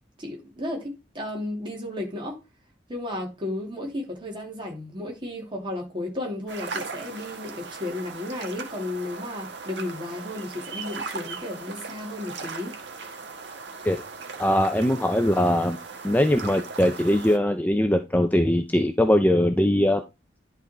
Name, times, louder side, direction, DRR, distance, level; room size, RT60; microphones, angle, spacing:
voice 1, 0.2-2.4 2.9-12.7, left 1 dB, 25° right, 2.9 m, -33 dB
sound 1, 6.5-17.4, right 4 dB, 75° right, 1.5 m, -38 dB
voice 2, 14.4-15.8 16.0-20.0, left 1 dB, 10° left, 0.6 m, -21 dB
11.0 x 4.0 x 4.4 m
head